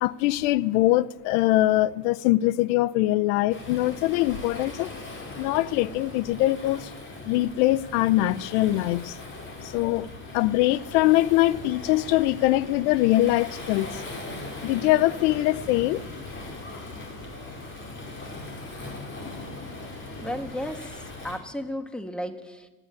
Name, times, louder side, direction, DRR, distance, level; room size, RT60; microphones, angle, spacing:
voice 1, 0.0-4.9 5.4-6.9 7.2-9.2 9.6-10.1 10.3-14.0 14.6-16.0 16.7-16.8, left 16 dB, 90° left, 0.7 m, -23 dB
Waves surf, 3.5-21.4, left 2 dB, 25° left, 4.4 m, -39 dB
voice 2, 20.2-20.8 21.2-22.7, equal, ahead, 1.4 m, -33 dB
27.0 x 10.0 x 9.7 m
cardioid pair, 140°, 45 cm